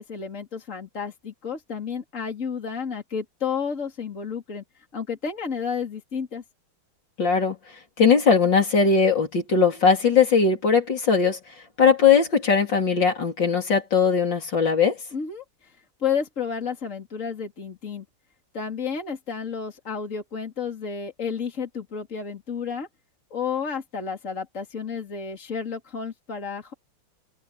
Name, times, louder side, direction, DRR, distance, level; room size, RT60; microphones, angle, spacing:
voice 1, 0.0-4.6 4.9-6.4 15.1-15.7 16.0-18.0 18.5-22.9 23.3-26.7, left 6 dB, 40° left, 3.4 m, -31 dB
voice 2, 7.2-7.6 8.0-11.4 11.8-15.0, left 5 dB, 65° left, 4.0 m, -19 dB
omnidirectional pair, 2.2 m